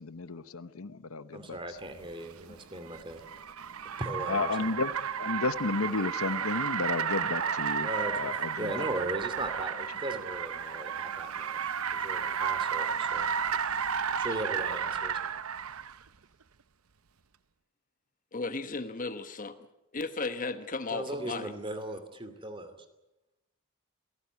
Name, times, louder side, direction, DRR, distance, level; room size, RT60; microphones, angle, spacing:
voice 1, 0.0-1.8 4.3-4.9 5.2-8.9, left 3 dB, 75° left, 14 dB, 0.9 m, -33 dB
voice 2, 1.3-3.2 4.0-4.5 7.8-13.3 13.6-13.9 14.2-15.2 20.9-22.8, right 1 dB, 25° right, 9 dB, 2.6 m, -38 dB
Car, 2.0-16.0, right 7 dB, 80° right, 0.8 m, -32 dB
voice 3, 18.3-19.6 19.9-21.5, left 3 dB, 40° left, 10 dB, 1.2 m, -35 dB
28.5 x 17.5 x 8.3 m, 0.96 s
head